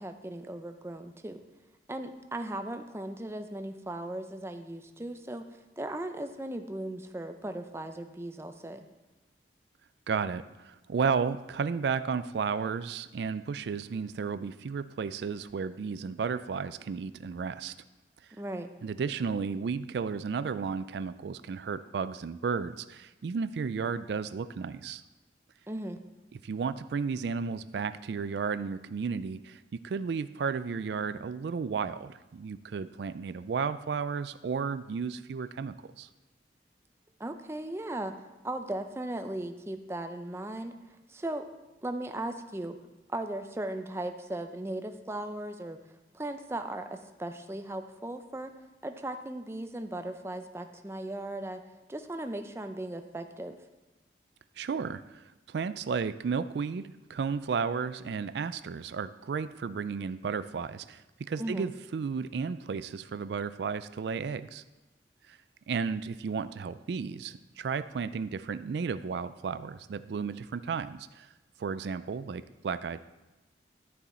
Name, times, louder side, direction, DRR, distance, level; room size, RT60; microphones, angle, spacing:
voice 1, 0.0-1.4 1.9-5.4 5.8-8.8 18.4-18.7 25.7-26.0 37.2-38.1 38.4-40.7 41.1-41.4 41.8-42.8 43.1-45.8 46.1-48.5 48.8-51.6 51.9-53.6 61.4-61.7, right 1 dB, 15° right, 7 dB, 0.5 m, -37 dB
voice 2, 10.1-17.7 18.8-25.0 26.3-36.1 54.6-64.6 65.3-65.4 65.7-71.3 71.6-73.0, right 5 dB, 70° right, 13 dB, 0.3 m, -33 dB
11.5 x 6.9 x 4.2 m, 1.1 s
head